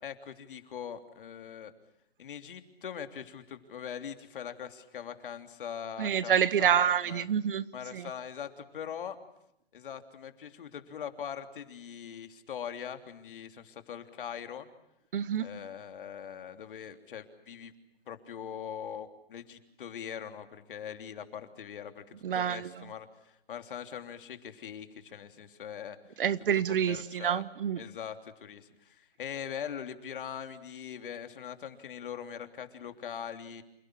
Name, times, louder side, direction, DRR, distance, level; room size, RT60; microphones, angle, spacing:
voice 1, 0.0-1.7 2.2-7.3 7.7-9.2 9.7-14.7 15.4-17.7 18.1-22.0 22.3-26.0 26.7-27.4 27.8-33.6, left 8 dB, 55° left, 8 dB, 3.3 m, -42 dB
voice 2, 6.0-7.6 7.9-8.1 15.1-15.5 22.2-22.7 26.2-27.8, right 9 dB, 55° right, 16 dB, 1.6 m, -27 dB
29.5 x 28.0 x 6.2 m, 0.79 s
hypercardioid pair, 160°, 31 cm